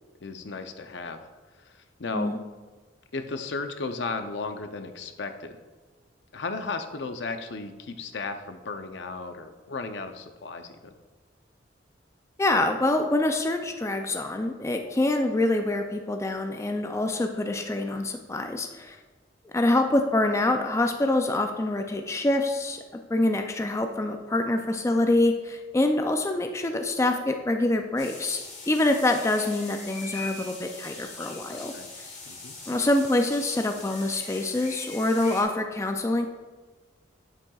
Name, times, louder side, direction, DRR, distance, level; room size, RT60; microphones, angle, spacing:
voice 1, 0.2-1.2 1.6-2.3 3.1-5.6 6.3-10.9 31.7-31.9 32.3-32.5, left 3 dB, 65° left, 8 dB, 0.6 m, -35 dB
voice 2, 12.4-19.0 19.5-22.8 23.1-31.7 32.7-36.3, left 2 dB, 15° left, 5 dB, 0.3 m, -25 dB
sound 1, 28.0-35.4, left 3 dB, 40° left, 1.7 m, -41 dB
8.7 x 7.6 x 2.3 m, 1.3 s
head